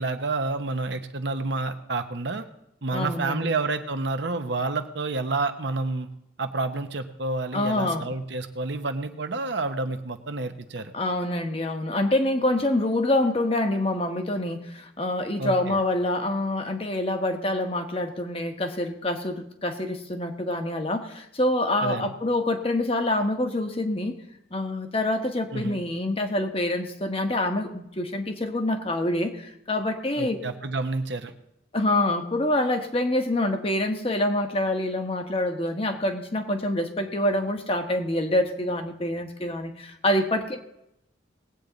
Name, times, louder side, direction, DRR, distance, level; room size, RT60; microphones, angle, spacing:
voice 1, 0.0-2.4 2.8-6.1 6.4-10.9 15.4-15.8 21.8-22.1 25.5-25.8 30.2-31.3, right 3 dB, 65° right, 7 dB, 0.9 m, -29 dB
voice 2, 2.9-3.5 7.5-8.1 10.9-24.2 24.5-30.4 31.7-40.6, left 1 dB, 30° left, 5 dB, 1.1 m, -26 dB
19.5 x 8.5 x 3.9 m, 0.82 s
head